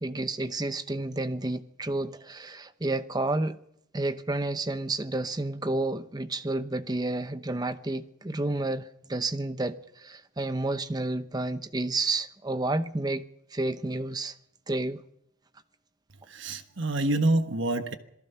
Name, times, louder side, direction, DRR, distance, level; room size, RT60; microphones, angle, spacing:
voice 1, 0.0-3.6 3.9-13.2 13.5-14.3 14.7-15.0, right 2 dB, 20° right, 0.8 m, -30 dB
voice 2, 16.3-18.0, right 2 dB, 60° right, 1.2 m, -26 dB
27.0 x 18.5 x 5.7 m
head